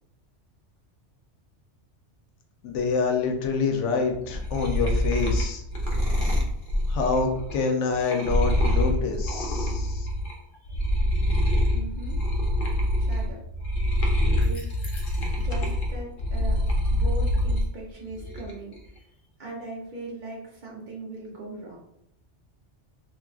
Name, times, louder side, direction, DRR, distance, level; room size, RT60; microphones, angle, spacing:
voice 1, 2.6-5.6 6.9-10.1, left 4 dB, 85° left, 4 dB, 0.9 m, -26 dB
sound 1, 4.1-10.3 10.7-17.7 18.1-18.7, left 1 dB, 55° left, 0.7 m, -25 dB
voice 2, 11.7-12.2 13.0-13.4 14.4-14.7 15.4-16.6 16.9-18.8 19.4-21.8, right 2 dB, 50° right, -2 dB, 0.7 m, -39 dB
3.5 x 2.4 x 2.3 m, 0.77 s
omnidirectional pair, 1.2 m